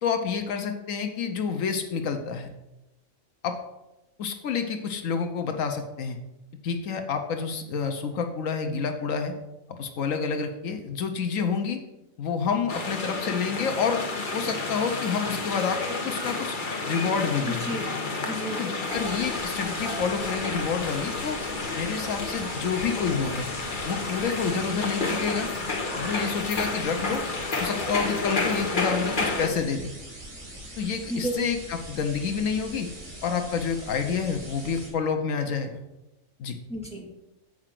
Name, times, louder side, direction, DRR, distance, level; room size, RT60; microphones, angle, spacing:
voice 1, 0.0-2.5 3.4-3.5 4.2-6.2 6.6-9.3 9.7-11.8 12.2-14.0 14.3-16.6 16.9-17.6 18.6-21.4 21.8-23.5 23.8-25.5 25.9-27.2 27.6-29.9 30.8-32.9 33.2-35.8 36.4-36.6, left 6 dB, 80° left, 6 dB, 1.2 m, -28 dB
sound 1, 12.7-29.5, left 3 dB, 40° left, 1.2 m, -30 dB
voice 2, 17.5-18.0 18.3-18.9 31.1-31.4 36.7-37.1, equal, 5° left, -3 dB, 2.1 m, -32 dB
sound 2, 18.9-34.9, right 1 dB, 80° right, 3.2 m, -42 dB
7.7 x 4.9 x 7.4 m, 0.96 s
omnidirectional pair, 1.4 m